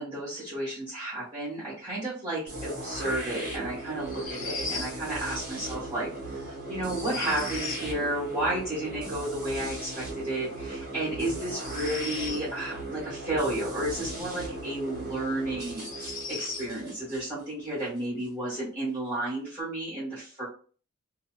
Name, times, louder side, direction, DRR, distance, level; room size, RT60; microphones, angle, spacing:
voice 1, 0.0-20.4, right 1 dB, 20° right, -10 dB, 1.5 m, -32 dB
sound 1, 2.5-18.3, right 2 dB, 40° right, 1.2 m, -38 dB
sound 2, 4.0-5.0 6.8-7.9 11.4-12.5 14.7-14.8 15.7-16.7, left 4 dB, 40° left, 0.7 m, -38 dB
2.8 x 2.7 x 2.3 m, 0.40 s
head